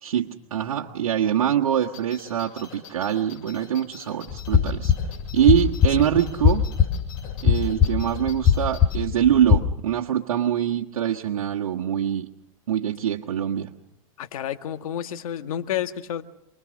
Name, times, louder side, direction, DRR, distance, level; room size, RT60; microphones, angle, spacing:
voice 1, 0.0-4.9 5.3-6.6 7.4-12.3 12.7-13.7, right 10 dB, 85° right, -2 dB, 1.5 m, -24 dB
sound 1, 1.8-9.0, left 8 dB, 50° left, 7.9 m, -46 dB
sound 2, 4.3-9.6, left 7 dB, 30° left, 2.2 m, -22 dB
voice 2, 14.2-16.2, left 10 dB, 75° left, 9 dB, 1.8 m, -30 dB
28.0 x 21.0 x 6.4 m, 0.83 s
hypercardioid pair, 120°, 18 cm